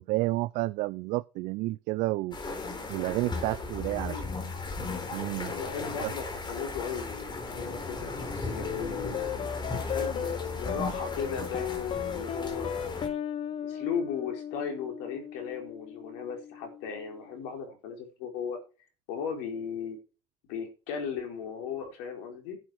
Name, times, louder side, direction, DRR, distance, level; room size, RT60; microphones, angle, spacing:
voice 1, 0.0-2.4 2.9-4.2 5.1-5.5, right 20 dB, 70° right, 0.5 m, -30 dB
sound 1, 2.3-13.1, left 3 dB, 35° left, 4.1 m, -36 dB
voice 2, 3.8-4.2 5.4-9.2 9.8-12.9 13.6-18.6 19.1-20.0 20.5-22.6, left 6 dB, 80° left, 4.4 m, -36 dB
sound 2, 8.6-17.3, left 9 dB, 50° left, 0.9 m, -36 dB
11.0 x 8.5 x 4.7 m
hypercardioid pair, 60°, 13 cm